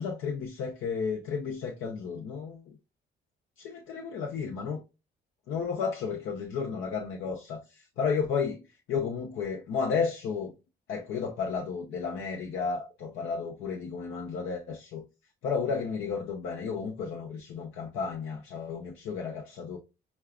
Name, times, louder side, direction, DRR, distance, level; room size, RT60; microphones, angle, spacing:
voice 1, 0.0-2.7 3.6-4.8 5.5-8.6 8.9-10.5 10.9-15.0 15.4-19.8, left 5 dB, 85° left, 0.7 m, -32 dB
5.6 x 2.3 x 2.3 m
cardioid pair, 90°, 20 cm